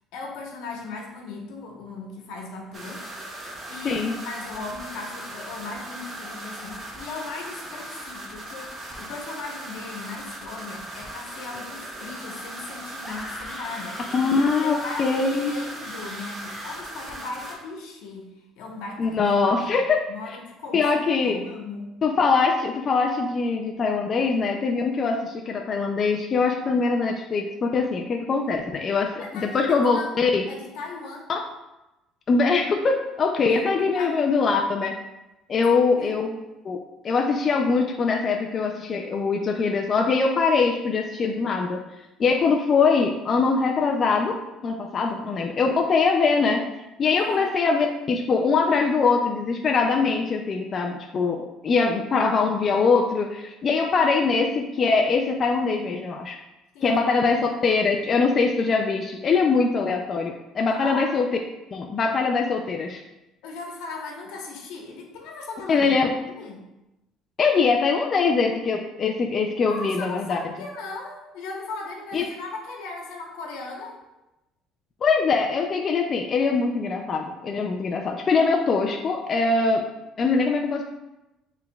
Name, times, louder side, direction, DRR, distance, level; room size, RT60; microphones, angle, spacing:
voice 1, 0.1-3.0 3.7-19.2 19.4-19.7 20.1-20.8 21.2-21.9 28.6-28.7 29.0-30.2 30.5-31.3 33.9-34.1 36.0-36.2 45.0-45.4 47.2-47.5 56.7-57.5 60.7-61.0 63.4-65.9 66.2-66.6 69.7-74.0, left 3 dB, 85° left, 0 dB, 1.0 m, -38 dB
sound 1, 2.7-17.5, right 1 dB, 25° right, 0.8 m, -38 dB
sound 2, 13.0-16.9, equal, 5° left, 0.7 m, -40 dB
voice 2, 14.1-15.5 19.0-20.0 20.7-21.3 22.0-30.5 31.3-31.4 32.3-34.9 35.5-36.3 36.6-36.8 37.0-41.8 42.2-44.4 44.6-46.6 47.0-56.4 56.8-61.2 61.7-63.0 65.7-66.1 67.4-70.4 72.1-72.2 75.0-79.8 80.2-80.8, left 4 dB, 30° left, 2 dB, 0.3 m, -22 dB
7.0 x 3.3 x 2.3 m, 0.97 s
cardioid pair, 170°, 0 cm